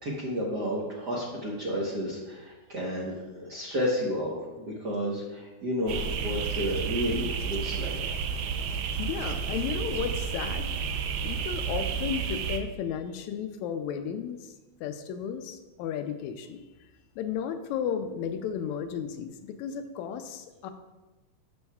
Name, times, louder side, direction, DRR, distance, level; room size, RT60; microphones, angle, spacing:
voice 1, 0.0-6.0 6.2-8.0, equal, 55° right, -5 dB, 1.2 m, -31 dB
sound 1, 5.9-12.6, right 6 dB, 75° right, 1.6 m, -31 dB
voice 2, 9.0-10.7 11.2-14.5 14.8-16.6 17.2-20.7, left 8 dB, 80° left, 8 dB, 1.9 m, -34 dB
12.5 x 6.2 x 2.3 m, 1.1 s
omnidirectional pair, 3.3 m